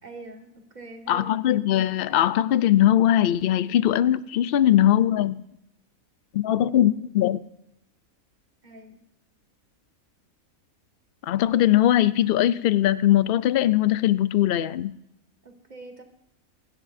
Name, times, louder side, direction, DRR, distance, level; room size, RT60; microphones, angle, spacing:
voice 1, 0.0-1.3 8.6-9.0 15.4-16.0, right 2 dB, 30° right, 3 dB, 1.8 m, -43 dB
voice 2, 1.1-5.4 6.3-7.4 11.2-14.9, left 12 dB, 60° left, 16 dB, 0.6 m, -20 dB
24.0 x 11.5 x 2.6 m, 0.81 s
omnidirectional pair, 1.5 m